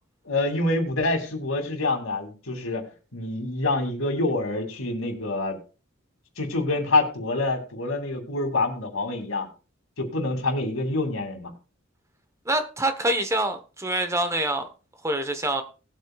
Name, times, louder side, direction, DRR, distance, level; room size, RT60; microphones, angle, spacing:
voice 1, 0.2-5.6 6.4-9.5 10.0-11.5, left 2 dB, 90° left, 4 dB, 2.6 m, -26 dB
voice 2, 12.4-14.7 15.0-15.6, right 1 dB, 15° right, 8 dB, 1.1 m, -25 dB
19.5 x 8.2 x 2.4 m, 0.34 s
head